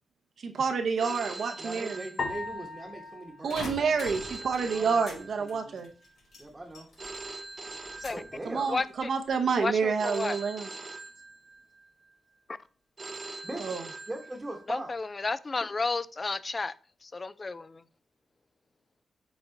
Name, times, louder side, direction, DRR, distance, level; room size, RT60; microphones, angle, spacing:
voice 1, 0.4-2.0 3.4-5.9 8.4-10.7 13.6-13.8, right 5 dB, 65° right, 5 dB, 0.7 m, -28 dB
Telephone, 1.0-2.9 4.0-5.9 7.0-8.9 10.0-11.8 13.0-14.8, right 3 dB, 30° right, 0.6 m, -43 dB
voice 2, 1.6-3.9 4.6-5.8 6.4-6.9 8.1-8.7 13.4-13.7 14.1-14.9, right 1 dB, 15° right, -1 dB, 1.0 m, -40 dB
sound 1, 2.2-4.7, left 4 dB, 45° left, 1.0 m, -39 dB
sound 2, 3.5-5.2 5.5-7.2 7.5-8.3 8.8-9.3, left 2 dB, 75° left, 3.4 m, -44 dB
voice 3, 8.7-9.1 9.6-10.4 14.7-16.7 17.0-17.8, left 3 dB, 30° left, 17 dB, 0.3 m, -32 dB
7.1 x 4.2 x 3.8 m, 0.40 s
cardioid pair, 115°, 0 cm